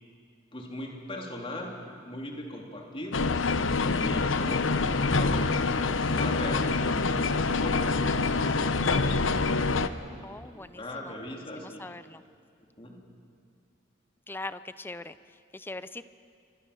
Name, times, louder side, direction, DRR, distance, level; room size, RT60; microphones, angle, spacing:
voice 1, 0.5-1.7 2.0-3.2 3.8-6.7 7.3-9.9 10.5-11.9 12.8-13.0, left 1 dB, 30° left, 0 dB, 3.4 m, -39 dB
sound 1, 3.1-9.9, left 3 dB, 90° left, 0.9 m, -26 dB
voice 2, 10.2-12.2 14.3-16.0, left 2 dB, 10° left, 13 dB, 0.5 m, -42 dB
28.0 x 24.0 x 7.0 m, 2.2 s
head